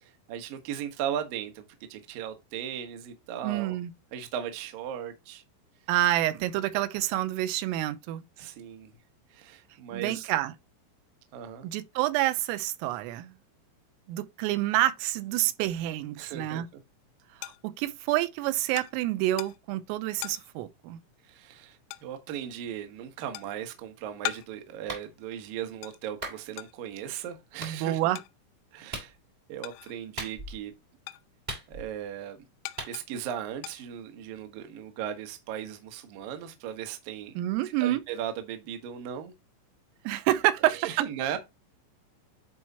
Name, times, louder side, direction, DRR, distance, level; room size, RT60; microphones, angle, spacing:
voice 1, 0.0-3.8 4.1-5.4 8.4-8.9 9.3-10.3 11.3-11.7 16.2-16.8 21.2-28.0 28.7-29.1 29.5-30.7 31.7-32.4 32.9-37.3 37.6-39.3 40.7-41.4, right 9 dB, 70° right, 2.2 m, -37 dB
voice 2, 3.4-3.9 5.9-8.2 9.9-10.5 11.6-13.3 14.1-16.7 17.4-21.0 27.6-28.2 37.4-38.0 40.1-40.8, right 14 dB, 90° right, 3.4 m, -28 dB
sound 1, 16.7-30.2 30.5-34.4, left 18 dB, 85° left, 3.2 m, -43 dB
Clapping, 24.9-25.1 26.2-26.4 27.6-27.8 28.9-29.1 30.2-30.6 31.5-32.0 32.8-32.9, right 2 dB, 25° right, 1.1 m, -37 dB
10.5 x 4.8 x 2.9 m
omnidirectional pair, 5.8 m